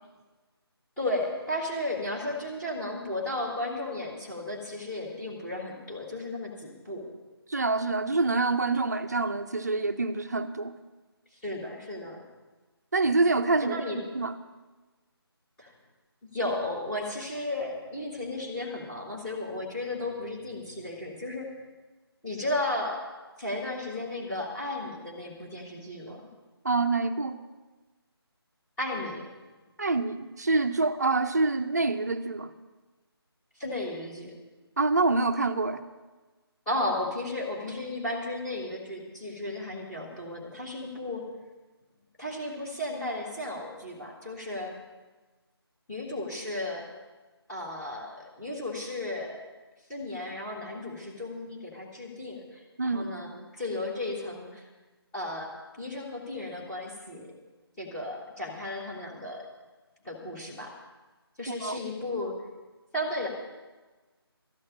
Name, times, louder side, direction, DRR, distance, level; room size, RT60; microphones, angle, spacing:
voice 1, 1.0-7.1 11.4-12.2 13.6-14.0 15.6-15.7 16.3-21.5 22.2-23.0 23.4-26.2 28.8-29.3 33.6-34.3 36.6-41.3 42.2-44.7 45.9-46.8 47.5-49.4 49.9-54.7 55.1-55.5 55.8-57.3 57.8-59.4 60.0-60.7 61.4-62.3 62.9-63.3, left 1 dB, 5° left, -6 dB, 1.6 m, -34 dB
voice 2, 7.5-10.8 12.9-13.8 14.1-14.3 26.6-27.4 29.8-32.5 34.8-35.8 52.8-53.1 61.5-61.8, right 3 dB, 40° right, 10 dB, 0.7 m, -26 dB
13.5 x 6.4 x 9.7 m, 1.2 s
figure-of-eight pair, 155°, 13 cm